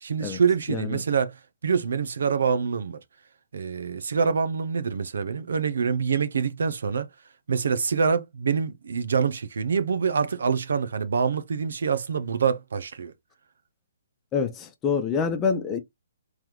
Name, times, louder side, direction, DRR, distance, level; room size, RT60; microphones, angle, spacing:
voice 1, 0.0-3.0 3.5-7.1 7.5-13.1, right 6 dB, 75° right, 0.6 m, -25 dB
voice 2, 0.7-1.0 14.3-15.8, left 6 dB, 20° left, 0.8 m, -26 dB
3.5 x 3.1 x 3.1 m
hypercardioid pair, 150°, 0 cm